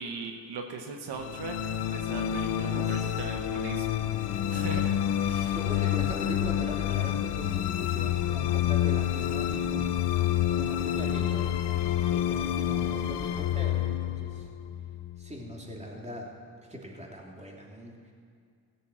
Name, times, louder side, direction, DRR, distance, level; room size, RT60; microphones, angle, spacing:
voice 1, 0.0-5.6 5.8-6.0, right 4 dB, 80° right, 4 dB, 1.0 m, -40 dB
sound 1, 1.1-15.5, left 11 dB, 85° left, 0.6 m, -28 dB
voice 2, 2.7-3.3 5.5-11.5 12.1-14.5 15.2-16.4 16.7-18.0, equal, 15° right, -1 dB, 3.0 m, -41 dB
15.5 x 8.4 x 6.2 m, 2.2 s
supercardioid pair, 50°, 39 cm